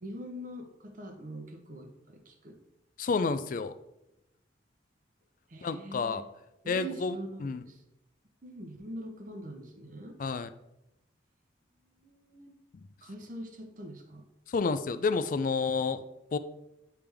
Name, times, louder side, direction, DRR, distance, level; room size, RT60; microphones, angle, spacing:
voice 1, 0.0-2.6 5.5-6.2 6.6-7.8 8.4-10.2 11.9-12.5 13.0-14.3 15.7-15.9, right 1 dB, 40° right, 5 dB, 0.7 m, -43 dB
voice 2, 3.0-3.7 5.6-6.2 6.7-7.1 7.4-7.6 10.2-10.5 14.5-16.0 16.3-16.4, left 4 dB, 45° left, 12 dB, 0.3 m, -29 dB
8.7 x 3.4 x 3.4 m, 0.88 s
head